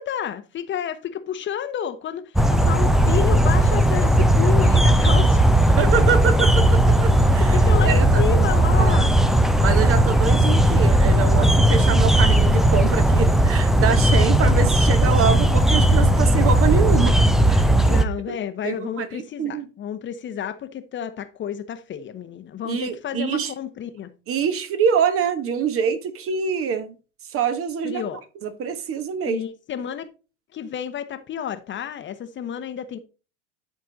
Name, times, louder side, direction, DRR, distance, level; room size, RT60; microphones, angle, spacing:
voice 1, 0.0-5.5 6.0-6.1 7.5-9.2 17.7-24.1 27.8-28.2 29.3-30.1 30.5-33.0, left 9 dB, 30° left, 0.9 m, -30 dB
sound 1, 2.4-18.0, right 1 dB, ahead, 0.5 m, -17 dB
voice 2, 5.7-7.6 7.8-8.2 8.8-9.1 9.6-17.2 17.4-18.0 18.3-18.4 18.6-19.7 22.6-23.5 24.3-26.9 27.3-28.0 28.4-29.4, right 7 dB, 35° right, 1.2 m, -25 dB
11.0 x 4.5 x 3.9 m
hypercardioid pair, 90°, 38 cm